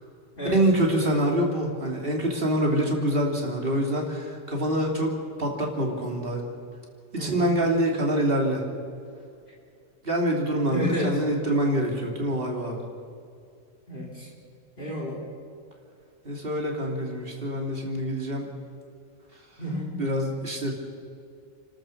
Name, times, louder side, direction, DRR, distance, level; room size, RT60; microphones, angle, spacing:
voice 1, 0.4-5.1 5.4-6.4 7.1-8.6 10.0-12.8 16.2-18.5 20.0-20.7, right 1 dB, 45° right, 1 dB, 3.3 m, -25 dB
voice 2, 7.2-7.5 10.7-11.2 13.9-14.3 14.8-15.2 19.6-20.0, equal, 40° left, -3 dB, 3.9 m, -30 dB
29.5 x 13.0 x 6.9 m, 2.3 s
omnidirectional pair, 1.3 m